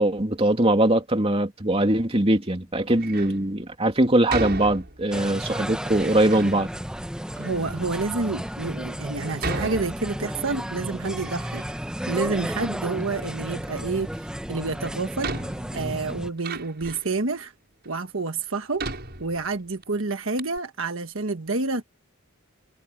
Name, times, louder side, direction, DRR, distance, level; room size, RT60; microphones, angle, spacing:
voice 1, 0.0-6.7, right 1 dB, 25° right, 2.9 m, -21 dB
Door, 2.9-3.4 4.3-5.3 5.9-6.6 7.3-7.4 8.1-8.2 9.4-10.5 10.9-12.0 12.2-13.1 14.4-14.5 15.2-17.2 17.8-17.9 18.8-19.8 20.1-20.2 20.4-20.6, right 3 dB, 50° right, 6.8 m, -35 dB
sound 1, 5.1-16.3, equal, 5° right, 1.1 m, -33 dB
voice 2, 7.4-11.6 12.1-15.4 15.7-17.5 17.8-18.8 19.2-21.8, right 3 dB, 65° right, 1.4 m, -29 dB
head